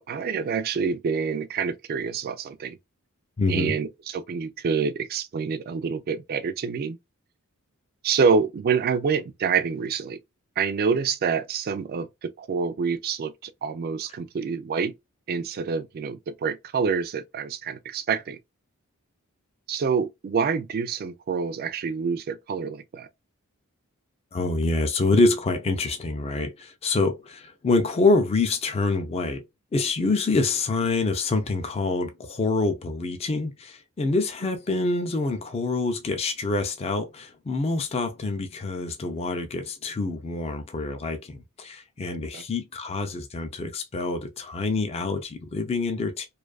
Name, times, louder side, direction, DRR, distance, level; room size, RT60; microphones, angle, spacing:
voice 1, 0.0-2.8 3.5-7.0 8.0-10.2 10.6-14.9 15.3-18.4 19.7-23.1 42.3-42.4, right 5 dB, 45° right, 0.3 m, -27 dB
voice 2, 3.4-3.7 24.3-29.4 29.7-46.3, left 3 dB, 30° left, 0.4 m, -26 dB
2.6 x 2.3 x 2.2 m
head